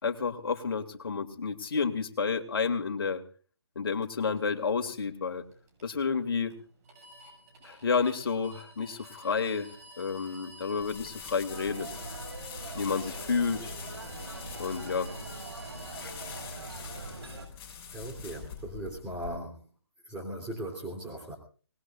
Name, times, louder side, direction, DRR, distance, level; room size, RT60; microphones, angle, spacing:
voice 1, 0.0-3.2 3.8-5.4 5.8-6.5 7.6-9.7 10.0-11.9 12.7-13.7 14.6-15.1 16.0-16.1, left 5 dB, 60° left, 6 dB, 2.5 m, -30 dB
sound 1, 4.0-16.4, right 1 dB, 35° right, 7.4 m, -52 dB
sound 2, 10.8-19.3, left 6 dB, 15° left, 6.2 m, -45 dB
sound 3, 11.5-17.5, right 2 dB, 70° right, 6.8 m, -42 dB
voice 2, 17.9-19.6 20.0-21.3, right 1 dB, 10° right, -2 dB, 3.5 m, -38 dB
25.5 x 20.0 x 2.6 m, 0.39 s
figure-of-eight pair, 150°, 14 cm